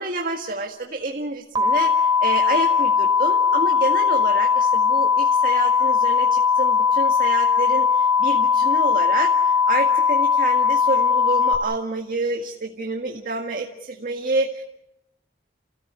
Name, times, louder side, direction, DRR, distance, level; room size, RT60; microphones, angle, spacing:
voice 1, 0.0-14.6, right 2 dB, 50° right, 1 dB, 2.0 m, -28 dB
sound 1, 1.6-11.6, left 6 dB, 25° right, 3.5 m, -19 dB
29.5 x 17.0 x 8.3 m, 0.85 s
head